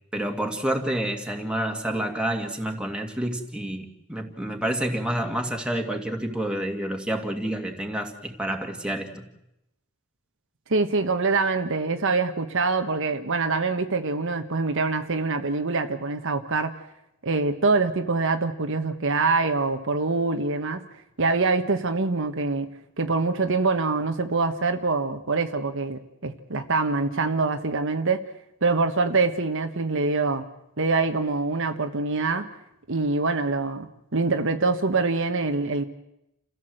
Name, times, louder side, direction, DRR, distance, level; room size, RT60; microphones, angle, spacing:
voice 1, 0.1-9.3, right 1 dB, 5° right, 2.3 m, -29 dB
voice 2, 10.7-16.7 17.2-20.8 21.2-22.7 23.0-28.3 28.6-30.5 30.8-32.5 32.9-35.8, right 3 dB, 65° right, 1.3 m, -24 dB
29.0 x 15.5 x 7.8 m
head